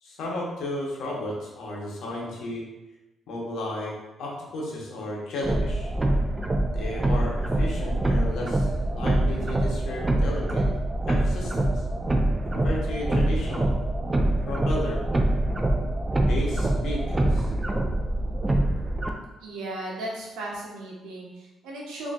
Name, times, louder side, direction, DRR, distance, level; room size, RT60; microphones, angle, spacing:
voice 1, 0.0-2.6 3.3-3.9 4.2-5.9 6.7-10.6 11.1-11.8 12.5-13.7 14.4-15.0 16.3-17.5, left 1 dB, 75° left, -3 dB, 1.0 m, -33 dB
sound 1, 5.4-19.1, right 1 dB, 20° right, 0.4 m, -25 dB
voice 2, 19.4-22.1, right 1 dB, 90° right, -3 dB, 0.9 m, -36 dB
4.1 x 2.8 x 2.4 m, 1.0 s
cardioid pair, 90°, 0 cm